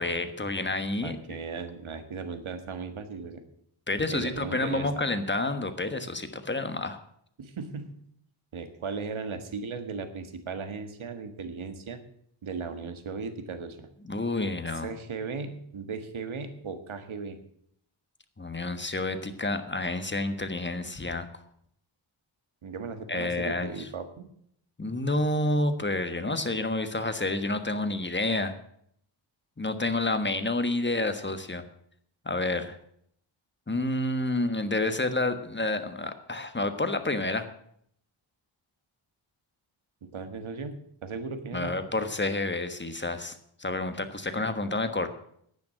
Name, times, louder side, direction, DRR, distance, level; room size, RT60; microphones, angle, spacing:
voice 1, 0.0-1.4 3.9-7.0 14.0-14.9 18.4-21.3 23.1-23.9 24.8-28.5 29.6-31.6 32.2-32.8 33.7-37.5 41.5-45.1, left 2 dB, 20° left, 9 dB, 1.4 m, -29 dB
voice 2, 1.0-3.4 4.1-5.0 7.4-7.9 8.5-12.0 12.4-13.9 14.8-17.4 22.6-24.3 40.1-40.7 41.0-41.8, right 5 dB, 75° right, 9 dB, 1.7 m, -37 dB
10.5 x 9.2 x 7.7 m, 0.68 s
cardioid pair, 75°, 49 cm